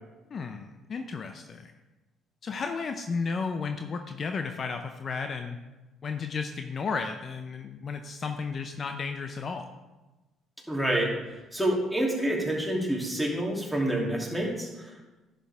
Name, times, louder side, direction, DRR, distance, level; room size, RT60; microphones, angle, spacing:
voice 1, 0.3-1.7 2.4-5.6 6.0-9.7, left 5 dB, 45° left, 6 dB, 0.6 m, -33 dB
voice 2, 10.7-11.1 11.5-15.0, right 1 dB, ahead, -3 dB, 2.8 m, -28 dB
10.5 x 6.9 x 3.5 m, 1.1 s
hypercardioid pair, 55°, 0 cm